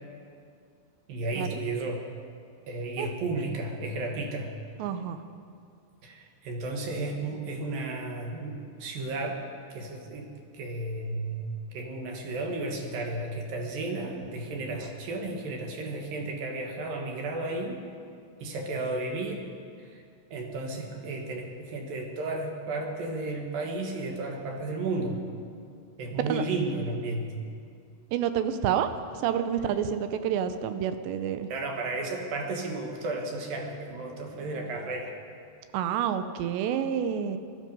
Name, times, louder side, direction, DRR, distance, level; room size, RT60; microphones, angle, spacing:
voice 1, 1.1-2.0 2.7-4.5 6.0-9.4 9.7-10.3 10.5-17.8 18.4-19.5 19.8-20.0 20.3-25.2 26.0-27.3 31.5-35.2, right 2 dB, 60° right, 2 dB, 3.0 m, -33 dB
voice 2, 4.8-5.2 26.2-26.4 28.1-28.9 29.2-31.5 35.7-37.4, right 9 dB, 85° right, 10 dB, 2.9 m, -28 dB
19.0 x 13.5 x 5.4 m, 2.4 s
omnidirectional pair, 4.9 m